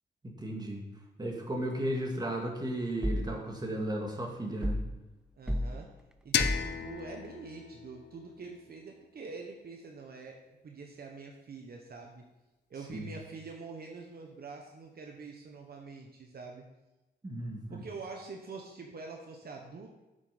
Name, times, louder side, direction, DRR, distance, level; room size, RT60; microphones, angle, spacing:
voice 1, 0.2-0.8 1.2-4.8 12.9-13.1 17.2-17.8, right 1 dB, 20° right, 0 dB, 1.9 m, -35 dB
sound 1, 3.0-3.3 4.6-4.9 5.5-5.7 6.4-6.7, equal, 5° right, 0.6 m, -31 dB
voice 2, 5.4-5.9 6.2-12.2 12.7-16.6 17.7-19.9, right 4 dB, 60° right, 1 dB, 1.2 m, -45 dB
sound 2, 6.3-9.2, left 9 dB, 75° left, 0.6 m, -35 dB
7.9 x 7.6 x 5.2 m, 1.0 s
cardioid pair, 100°, 18 cm